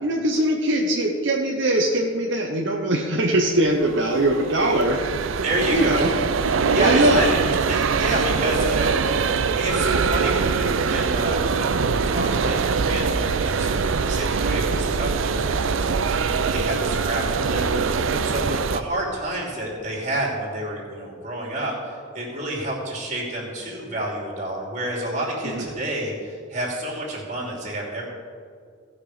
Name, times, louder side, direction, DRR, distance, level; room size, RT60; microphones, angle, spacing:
voice 1, 0.0-5.0 5.7-6.1 6.7-7.2 14.2-14.5 18.1-18.2 25.4-25.7, right 1 dB, 65° right, 0 dB, 0.9 m, -21 dB
sound 1, 3.7-18.8, right 5 dB, 85° right, 0.5 m, -23 dB
voice 2, 5.4-6.1 6.7-7.4 7.7-9.3 9.5-28.0, right 1 dB, 40° right, -3 dB, 2.9 m, -29 dB
17.5 x 6.0 x 5.0 m, 2.1 s
head